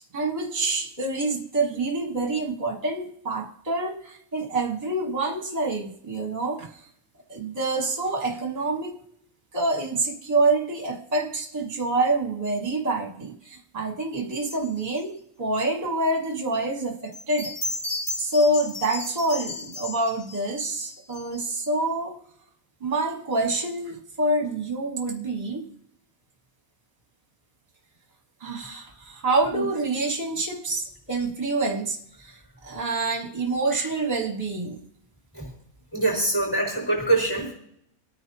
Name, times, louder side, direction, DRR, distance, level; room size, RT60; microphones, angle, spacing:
voice 1, 0.1-6.7 7.3-8.9 9.5-17.5 18.2-22.2 22.8-25.6 28.4-32.4 32.6-34.8, right 2 dB, 30° right, 1 dB, 1.5 m, -27 dB
sound 1, 14.4-15.0 17.1-21.7, left 2 dB, 75° left, 6.5 m, -35 dB
voice 2, 35.9-37.5, right 2 dB, 5° left, -9 dB, 5.4 m, -24 dB
26.5 x 9.3 x 2.8 m, 0.71 s
omnidirectional pair, 1.5 m